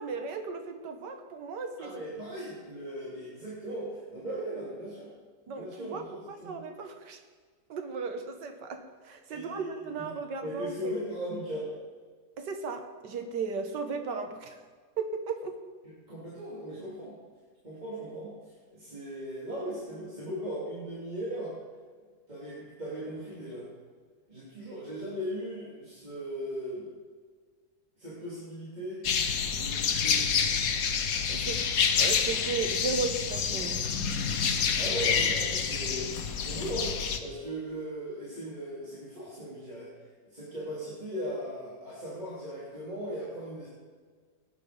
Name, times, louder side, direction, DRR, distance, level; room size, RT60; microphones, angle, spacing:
voice 1, 0.0-1.9 5.5-7.2 7.7-10.9 12.4-14.6 15.0-15.6 31.3-31.6 32.0-34.0 34.4-34.5, right 4 dB, 90° right, 7 dB, 1.8 m, -36 dB
voice 2, 1.8-5.1 5.5-6.6 9.3-10.1 10.4-11.7 16.1-17.2 17.6-21.6 22.3-23.7 24.3-26.9 28.0-29.0 29.5-30.6 34.8-43.7, equal, 25° right, -9 dB, 3.4 m, -38 dB
sound 1, 29.0-37.2, left 6 dB, 60° left, 1.3 m, -28 dB
17.0 x 10.0 x 5.2 m, 1.5 s
omnidirectional pair, 1.8 m